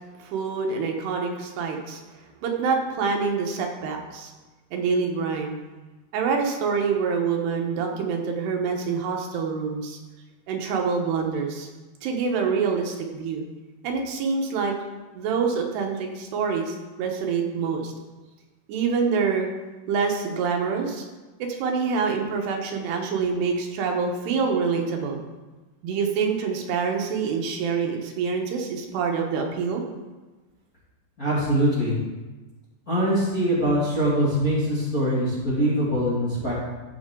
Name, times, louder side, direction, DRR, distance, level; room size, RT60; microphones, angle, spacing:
voice 1, 0.2-2.0 2.4-4.3 4.7-5.6 6.1-10.0 10.5-11.7 12.0-13.4 13.8-14.8 15.1-17.9 18.7-19.5 19.9-21.1 21.6-25.2 25.8-29.8, right 5 dB, 85° right, 2 dB, 3.2 m, -26 dB
voice 2, 31.2-32.0 32.9-36.5, equal, 35° left, -8 dB, 1.6 m, -23 dB
14.0 x 6.5 x 3.8 m, 1.2 s
omnidirectional pair, 4.8 m